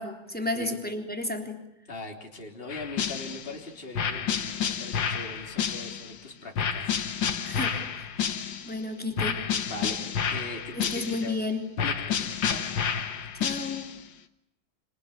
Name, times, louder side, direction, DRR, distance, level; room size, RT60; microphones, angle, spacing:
voice 1, 0.0-1.6 7.4-8.1 8.6-9.4 10.7-11.6 13.4-13.9, left 2 dB, 5° left, 4 dB, 3.6 m, -32 dB
voice 2, 1.9-6.9 9.6-11.4 11.8-12.7, left 2 dB, 25° left, 2 dB, 3.6 m, -40 dB
sound 1, 2.7-3.6 3.9-6.2 6.6-8.8 9.2-11.4 11.8-14.0, left 7 dB, 65° left, 2.1 m, -30 dB
27.0 x 26.5 x 8.3 m, 0.83 s
omnidirectional pair, 2.2 m